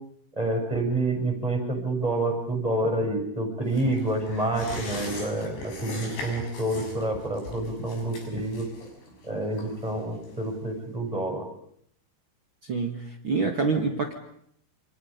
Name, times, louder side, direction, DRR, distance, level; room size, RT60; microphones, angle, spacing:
voice 1, 0.4-8.7 9.2-11.4, right 2 dB, 5° right, 1 dB, 7.0 m, -28 dB
sound 1, 3.7-10.8 11.1-11.2, left 2 dB, 80° left, 8.8 m, -40 dB
voice 2, 12.6-14.1, right 4 dB, 70° right, 3 dB, 1.1 m, -27 dB
29.5 x 28.5 x 5.3 m, 0.69 s
omnidirectional pair, 5.6 m